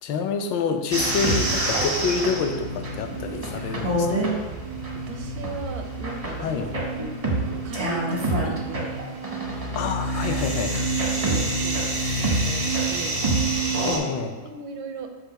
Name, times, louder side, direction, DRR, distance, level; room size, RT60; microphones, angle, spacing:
voice 1, 0.0-4.1 6.4-6.7 9.7-10.7 13.8-14.3, left 5 dB, 75° left, 6 dB, 1.3 m, -27 dB
sound 1, 0.9-14.0, right 2 dB, 40° right, 0.5 m, -26 dB
voice 2, 4.9-7.2 7.4-9.0 9.8-10.0 10.3-13.2 14.0-15.1, right 4 dB, 85° right, 5 dB, 1.5 m, -39 dB
6.7 x 2.7 x 5.7 m, 1.4 s
omnidirectional pair, 2.1 m